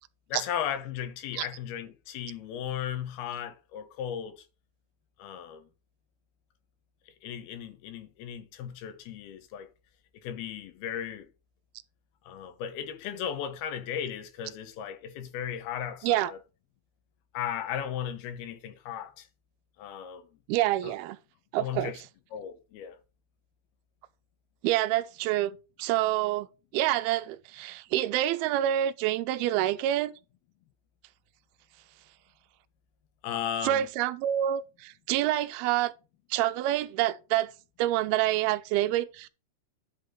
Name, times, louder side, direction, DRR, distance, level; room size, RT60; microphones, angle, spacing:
voice 1, 0.3-4.5 5.2-5.7 7.2-9.7 10.2-11.3 12.3-16.4 17.3-19.3 19.8-20.3 20.8-20.9 21.6-22.0 22.3-23.0 33.2-33.9, left 9 dB, 75° left, 2.9 m, -36 dB
voice 2, 20.5-21.2 21.5-21.9 24.6-26.5 26.7-30.1 33.6-35.9 36.3-37.5 37.8-39.3, right 13 dB, 80° right, 2.4 m, -27 dB
11.0 x 6.0 x 3.9 m
omnidirectional pair, 4.7 m